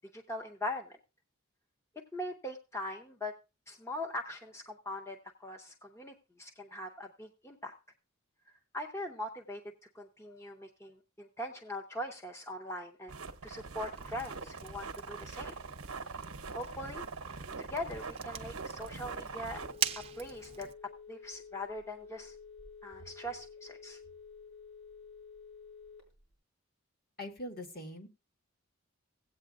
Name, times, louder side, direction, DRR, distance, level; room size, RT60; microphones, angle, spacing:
voice 1, 0.1-1.0 2.1-3.3 3.7-7.7 8.7-9.6 9.9-13.1 13.4-15.6 16.5-17.0 17.3-19.6 20.0-20.7 21.1-22.4 22.8-24.0, left 1 dB, 15° left, 2 dB, 0.7 m, -41 dB
sound 1, 13.1-19.7, right 4 dB, 80° right, 0.8 m, -43 dB
Fire, 13.9-20.7, right 8 dB, 25° right, 0.5 m, -43 dB
Telephone, 19.5-26.3, left 5 dB, 75° left, 4.3 m, -51 dB
voice 2, 27.2-28.1, left 1 dB, 45° left, 2 dB, 1.8 m, -42 dB
16.5 x 8.5 x 2.4 m, 0.30 s
head